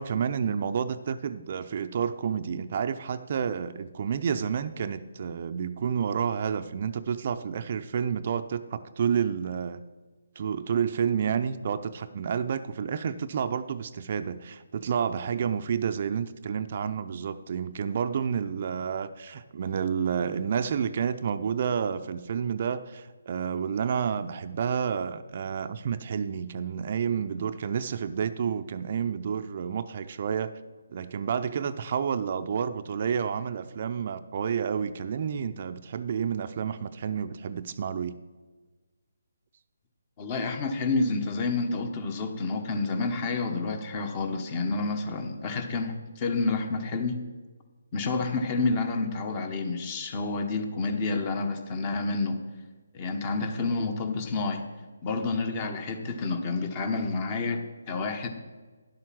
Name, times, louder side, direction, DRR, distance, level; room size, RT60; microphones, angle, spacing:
voice 1, 0.0-9.8 10.4-30.5 30.9-38.2, right 7 dB, 45° right, 10 dB, 0.5 m, -30 dB
voice 2, 40.2-47.2 47.9-52.4 52.9-54.7 55.0-58.3, left 3 dB, 30° left, 7 dB, 1.1 m, -29 dB
11.0 x 7.8 x 6.0 m, 1.4 s
figure-of-eight pair, 155°, 0 cm